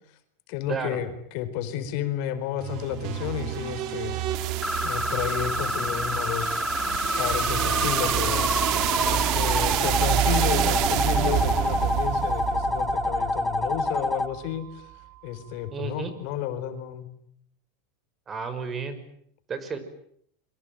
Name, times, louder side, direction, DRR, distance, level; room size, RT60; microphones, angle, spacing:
voice 1, 0.5-4.2 4.8-6.6 7.2-8.5 9.0-14.9 15.2-17.1, left 10 dB, 60° left, 9 dB, 4.6 m, -32 dB
sound 1, 2.6-14.5, right 12 dB, 50° right, 2.7 m, -28 dB
sound 2, 4.6-14.3, left 2 dB, 5° left, 1.6 m, -27 dB
voice 2, 15.7-16.1 18.3-19.0 19.5-19.8, right 5 dB, 25° right, 12 dB, 5.7 m, -32 dB
27.0 x 24.0 x 9.3 m, 0.68 s
supercardioid pair, 130°, 0 cm